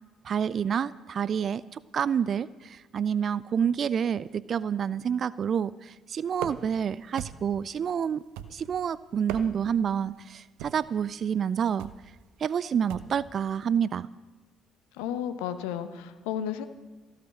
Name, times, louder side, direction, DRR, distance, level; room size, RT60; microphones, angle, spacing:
voice 1, 0.2-8.2 8.5-11.9 12.4-14.1, right 7 dB, 50° right, 19 dB, 0.4 m, -28 dB
sound 1, 6.4-6.8 7.2-7.6 8.4-8.8 9.1-9.8 10.6-10.9 11.8-12.1 12.9-13.2, right 10 dB, 70° right, 0.7 m, -39 dB
voice 2, 14.9-16.7, left 9 dB, 75° left, 10 dB, 0.9 m, -33 dB
15.0 x 12.0 x 6.4 m, 1.3 s
figure-of-eight pair, 50°, 0 cm